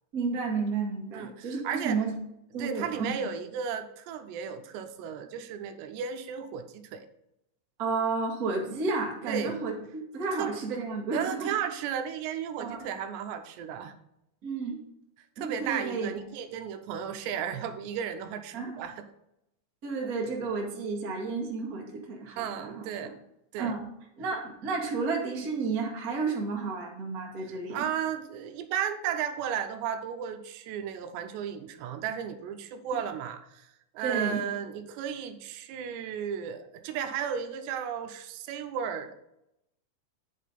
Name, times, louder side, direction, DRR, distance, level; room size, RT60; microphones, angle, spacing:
voice 1, 0.1-2.1 2.5-3.1 7.8-11.5 12.6-12.8 14.4-14.8 15.4-16.2 18.5-18.8 19.8-23.1 23.6-23.8 24.2-27.8 34.0-34.4, right 4 dB, 70° right, -2 dB, 0.8 m, -32 dB
voice 2, 1.1-2.0 2.6-7.1 9.3-9.6 10.4-10.6 11.1-13.9 15.4-19.1 22.4-23.1 23.5-23.7 27.7-33.7 33.9-39.1, right 8 dB, 85° right, 9 dB, 2.8 m, -34 dB
9.1 x 5.6 x 3.9 m, 0.83 s
omnidirectional pair, 5.0 m